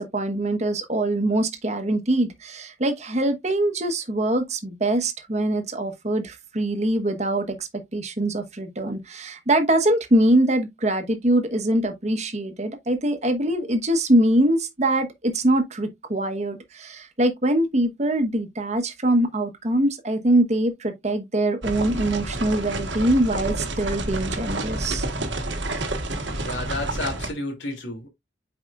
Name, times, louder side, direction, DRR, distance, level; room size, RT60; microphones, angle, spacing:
voice 1, 0.0-25.1, right 1 dB, 35° right, 1.1 m, -23 dB
sound 1, 21.6-27.3, right 2 dB, 75° right, 1.4 m, -29 dB
voice 2, 26.4-28.1, left 2 dB, 75° left, 2.8 m, -31 dB
8.5 x 4.8 x 2.4 m
head